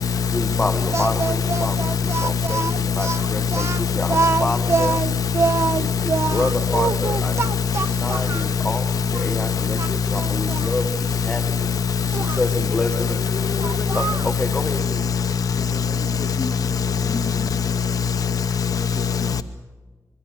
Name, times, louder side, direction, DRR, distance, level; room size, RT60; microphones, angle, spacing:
voice 1, 0.3-5.0 5.8-11.7 12.1-13.1 13.9-15.0, left 2 dB, 20° left, 1.6 m, -28 dB
Speech, 0.9-8.5 9.1-9.3 9.8-10.7 12.1-12.4 13.6-14.4, right 4 dB, 50° right, 0.6 m, -25 dB
voice 2, 1.5-1.9 2.8-2.9 3.2-4.2 5.2-5.3 6.7-6.8 7.9-8.0 8.6-8.7 11.6-11.8 12.2-12.3 13.6-13.7 14.0-14.2 14.4-16.4 16.8-19.4, left 6 dB, 80° left, 0.8 m, -23 dB
voice 3, 12.6-14.0 15.5-17.7 18.6-19.4, left 4 dB, 55° left, 2.0 m, -34 dB
25.0 x 23.0 x 7.2 m
wide cardioid pair, 175°, 6 cm